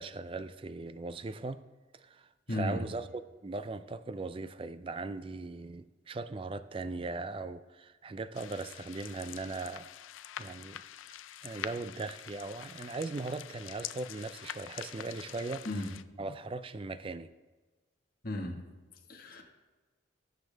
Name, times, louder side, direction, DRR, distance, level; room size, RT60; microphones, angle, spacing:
voice 1, 0.0-1.6 1.9-9.9 10.4-10.8 11.4-15.7 16.2-17.3, right 3 dB, 25° right, 13 dB, 0.4 m, -39 dB
voice 2, 2.5-2.8 15.6-15.9 18.2-18.6 19.1-19.4, left 1 dB, 50° left, 1 dB, 1.5 m, -34 dB
sound 1, 8.3-16.0, left 11 dB, 80° left, 0.4 m, -45 dB
18.0 x 6.8 x 3.4 m, 1.3 s
head